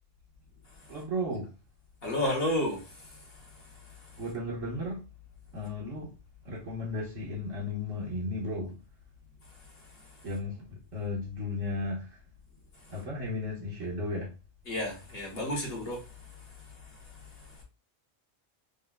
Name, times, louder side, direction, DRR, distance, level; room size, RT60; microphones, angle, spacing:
voice 1, 0.9-1.5 4.2-5.0 5.5-6.1 6.4-8.7 10.2-12.2 12.9-14.3, left 1 dB, 75° right, 1.6 m, -34 dB
voice 2, 2.0-2.8 14.7-16.0, left 1 dB, 50° left, 1.3 m, -30 dB
5.4 x 2.2 x 2.3 m
omnidirectional pair, 1.3 m